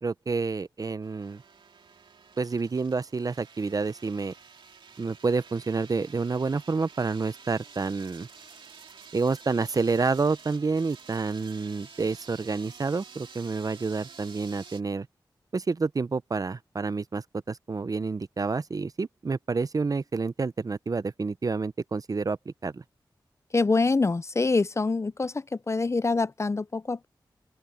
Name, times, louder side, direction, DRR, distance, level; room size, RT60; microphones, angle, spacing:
voice 1, 0.0-1.4 2.4-4.3 5.0-8.3 9.1-15.1 15.5-22.8, right 4 dB, 45° right, 0.6 m, -29 dB
sound 1, 1.0-14.8, right 5 dB, 90° right, 2.6 m, -50 dB
voice 2, 23.5-27.1, left 3 dB, 35° left, 0.5 m, -25 dB
open air
cardioid pair, 55°, 8 cm